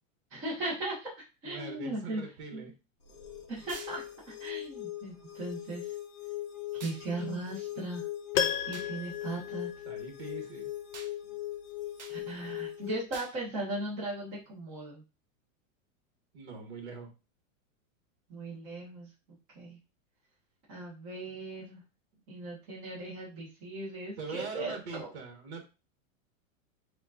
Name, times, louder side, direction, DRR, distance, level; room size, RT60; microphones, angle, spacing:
voice 1, 0.3-2.2 2.5-2.7 3.5-5.9 6.8-8.0 8.7-9.7 12.1-15.0 18.3-19.1 19.5-19.8 20.7-21.8 22.3-25.1, right 2 dB, 20° right, -8 dB, 1.0 m, -38 dB
voice 2, 1.4-2.7 9.8-10.7 11.2-11.3 16.3-17.1 24.2-25.6, right 4 dB, 55° right, 3 dB, 1.4 m, -42 dB
sound 1, 3.0-13.0, left 14 dB, 25° left, 0.3 m, -40 dB
sound 2, 3.7-4.0 6.8-7.0 8.7-8.9 10.9-11.1 12.0-12.2 13.1-13.4, right 5 dB, 35° right, 0.5 m, -46 dB
Piano, 8.3-10.4 10.7-10.8, left 8 dB, 80° left, 0.7 m, -34 dB
7.2 x 2.5 x 2.4 m, 0.30 s
supercardioid pair, 180°, 41 cm